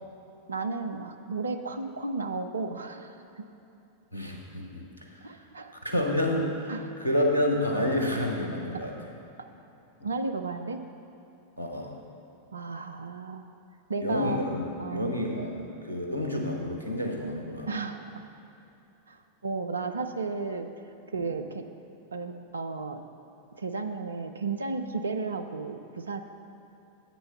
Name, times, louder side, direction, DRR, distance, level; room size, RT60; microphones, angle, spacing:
voice 1, 0.5-3.4 5.2-5.7 6.7-6.9 8.7-8.8 10.0-10.8 12.5-13.5 13.9-14.4 14.8-15.2 17.7-18.2 19.1-20.7 21.1-21.7 22.1-23.0 23.5-26.2, right 4 dB, 75° right, 7 dB, 0.4 m, -33 dB
voice 2, 4.1-4.8 5.8-6.7 7.0-8.9 11.6-11.9 14.0-17.7, left 1 dB, 85° left, 1 dB, 1.1 m, -29 dB
8.2 x 6.1 x 5.6 m, 2.9 s
figure-of-eight pair, 90°, 0 cm